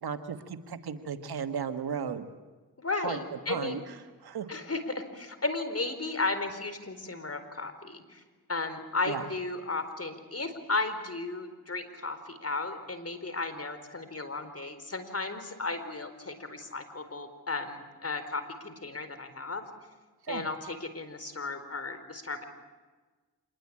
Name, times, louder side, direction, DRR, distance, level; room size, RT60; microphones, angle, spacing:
voice 1, 0.0-2.3 3.0-3.2 3.5-4.0 4.2-4.5 9.1-9.3 20.2-20.4, right 7 dB, 85° right, 8 dB, 1.7 m, -35 dB
voice 2, 2.8-3.8 4.5-8.2 8.5-19.6 20.3-22.4, left 3 dB, 40° left, 10 dB, 4.4 m, -34 dB
26.5 x 21.0 x 8.8 m, 1.3 s
cardioid pair, 45°, 37 cm